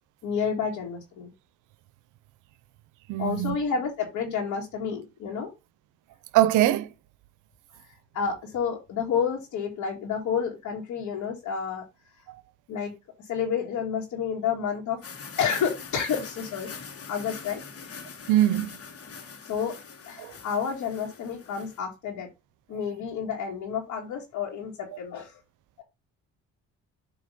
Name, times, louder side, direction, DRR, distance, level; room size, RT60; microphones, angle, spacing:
voice 1, 0.2-1.3 3.2-5.5 7.9-11.8 12.7-12.9 13.3-15.0 15.4-16.7 17.1-17.6 19.5-19.7 20.1-22.3 22.7-25.4 25.8-25.9, left 7 dB, 85° left, 1.9 m, -30 dB
voice 2, 3.1-3.6 6.3-6.9 12.3-12.4 18.3-18.8 20.2-20.3, right 13 dB, 90° right, 0.6 m, -22 dB
sound 1, 15.0-21.8, left 5 dB, 50° left, 1.5 m, -43 dB
7.9 x 2.9 x 5.3 m
cardioid pair, 90°, 30 cm